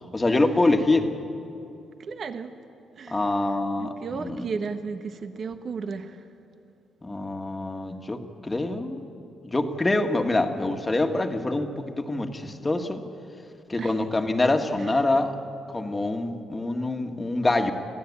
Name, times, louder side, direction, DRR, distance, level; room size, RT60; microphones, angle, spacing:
voice 1, 0.1-1.1 3.1-3.9 4.2-4.5 7.0-9.0 9.4-13.0 13.7-15.4 15.7-17.7, left 2 dB, 20° left, 5 dB, 1.8 m, -25 dB
voice 2, 2.0-2.6 3.0-3.3 3.8-6.2 13.8-14.1 14.9-15.0, right 5 dB, 50° right, 8 dB, 1.3 m, -34 dB
26.5 x 15.5 x 8.5 m, 2.7 s
cardioid pair, 90°, 0 cm